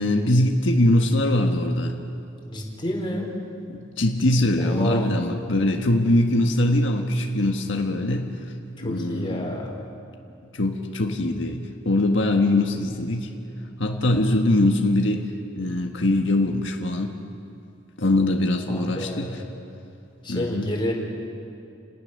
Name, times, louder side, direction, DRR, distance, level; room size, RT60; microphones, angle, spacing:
voice 1, 0.0-2.0 3.7-8.3 8.8-9.6 10.5-13.3 13.8-17.1 18.0-19.4 20.3-20.7, left 1 dB, 85° left, 2 dB, 1.5 m, -22 dB
voice 2, 2.5-3.3 4.6-5.1 8.8-9.8 18.7-19.4 20.2-20.9, left 1 dB, 25° left, -1 dB, 4.1 m, -29 dB
30.0 x 18.5 x 6.6 m, 2.6 s
head